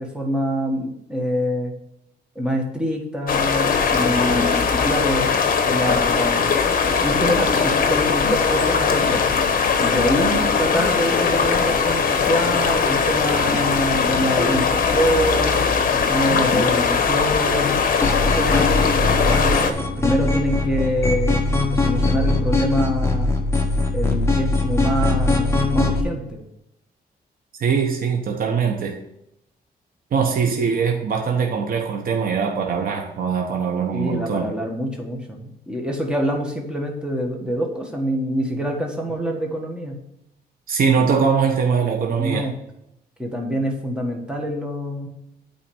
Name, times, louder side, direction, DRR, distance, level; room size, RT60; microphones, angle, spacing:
voice 1, 0.0-1.7 2.4-5.3 5.6-6.5 7.0-9.4 9.8-15.6 15.9-17.8 18.2-23.3 23.9-26.4 33.9-40.0 42.2-42.5 43.2-45.1, equal, 5° right, 0 dB, 1.7 m, -25 dB
sound 1, 3.3-19.7, left 5 dB, 55° left, 1.0 m, -20 dB
sound 2, 18.0-26.0, left 2 dB, 15° left, 1.1 m, -21 dB
voice 2, 27.6-29.0 30.1-34.5 40.7-42.5, right 6 dB, 60° right, 2 dB, 1.0 m, -22 dB
8.9 x 4.2 x 7.0 m, 0.83 s
wide cardioid pair, 145°, 17 cm